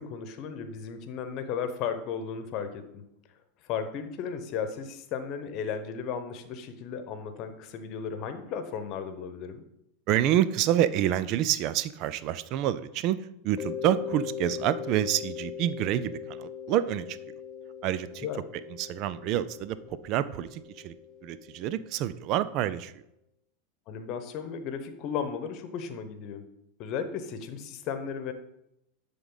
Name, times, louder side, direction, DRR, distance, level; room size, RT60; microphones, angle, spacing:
voice 1, 0.0-3.0 3.7-9.6 18.2-18.4 23.9-26.4 26.8-28.3, left 7 dB, 50° left, 8 dB, 1.0 m, -35 dB
voice 2, 10.1-17.2 17.8-18.3 18.7-20.9 21.2-23.0, right 11 dB, 50° right, 16 dB, 0.4 m, -28 dB
Mallet percussion, 13.6-22.2, left 8 dB, 30° left, 0.5 m, -40 dB
11.0 x 3.7 x 3.9 m, 0.81 s
hypercardioid pair, 95°, 0 cm